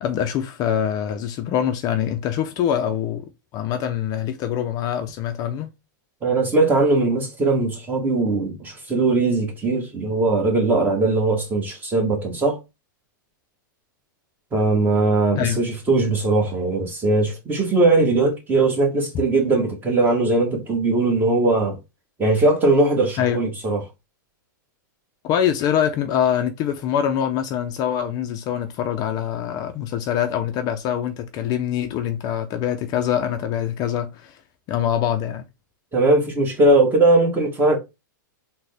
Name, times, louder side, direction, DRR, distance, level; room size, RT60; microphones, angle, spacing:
voice 1, 0.0-5.7 15.3-15.6 23.2-23.4 25.2-34.4 34.7-35.4, left 9 dB, 35° left, 0.5 m, -24 dB
voice 2, 6.2-12.6 14.5-21.8 22.2-23.8 35.9-37.8, right 2 dB, 15° right, 1.3 m, -20 dB
3.8 x 2.2 x 3.4 m
hypercardioid pair, 115°, 11 cm